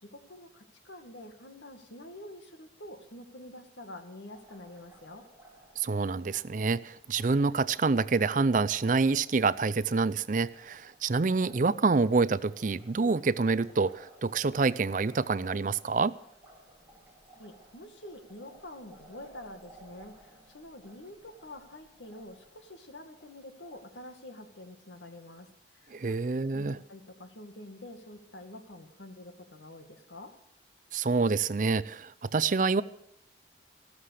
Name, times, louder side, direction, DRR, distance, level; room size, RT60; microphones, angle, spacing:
voice 1, 0.0-5.3 17.4-26.2 26.5-30.3, left 1 dB, 85° left, 7 dB, 2.0 m, -47 dB
Liquid, 4.3-23.8, right 1 dB, 15° right, 3.8 m, -58 dB
voice 2, 5.8-16.2 25.9-26.8 30.9-32.8, right 4 dB, 45° right, 17 dB, 0.5 m, -27 dB
14.5 x 13.5 x 6.5 m, 0.77 s
head